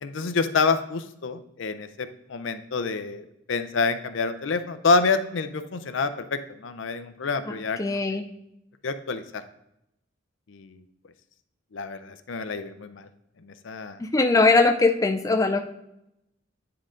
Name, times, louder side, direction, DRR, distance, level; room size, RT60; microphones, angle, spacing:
voice 1, 0.0-8.0 8.8-9.4 10.5-10.8 11.7-13.1 13.4-14.0, left 4 dB, 75° left, 10 dB, 0.5 m, -27 dB
voice 2, 7.5-8.2 14.0-15.6, left 3 dB, 15° left, 4 dB, 0.4 m, -21 dB
9.5 x 3.8 x 3.8 m, 0.82 s
head